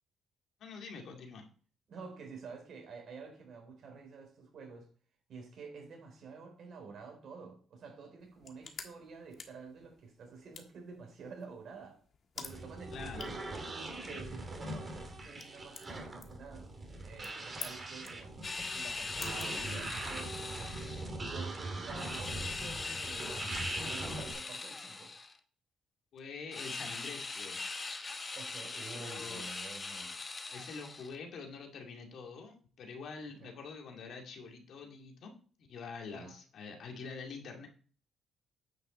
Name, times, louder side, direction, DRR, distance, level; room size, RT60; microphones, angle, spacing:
voice 1, 0.6-1.4 12.9-13.3 26.1-27.6 28.9-29.5 30.5-35.3 35.6-37.7, left 5 dB, 70° left, 2.2 m, -46 dB
voice 2, 1.9-4.9 5.3-12.0 12.4-20.8 21.3-25.1 28.4-30.2 33.4-33.5 36.1-36.4, right 5 dB, 65° right, 4.0 m, -50 dB
sound 1, 8.2-20.3, left 5 dB, 50° left, 1.4 m, -52 dB
sound 2, 12.4-24.3, right 2 dB, 30° right, 2.5 m, -41 dB
sound 3, 18.4-21.1 22.0-25.4 26.5-31.2, left 3 dB, 30° left, 1.0 m, -41 dB
9.3 x 5.8 x 4.3 m
cardioid pair, 90°, 0 cm